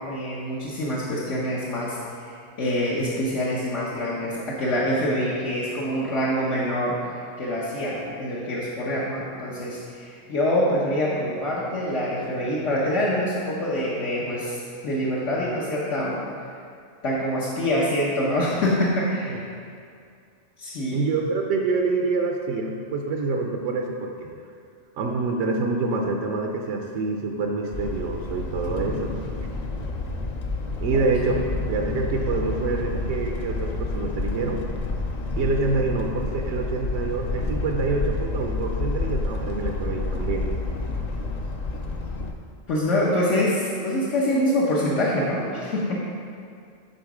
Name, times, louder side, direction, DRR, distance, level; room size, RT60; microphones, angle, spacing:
voice 1, 0.0-2.0 2.2-7.0 7.4-16.2 17.0-19.4 20.6-21.0 28.8-29.2 42.7-46.0, left 1 dB, 75° left, -7 dB, 1.4 m, -25 dB
voice 2, 20.9-24.3 25.0-29.1 30.7-34.6 35.4-40.6, right 3 dB, 80° right, 2 dB, 1.0 m, -26 dB
sound 1, 27.7-42.3, left 3 dB, 50° left, 0.5 m, -29 dB
10.5 x 4.0 x 4.8 m, 2.3 s
omnidirectional pair, 1.3 m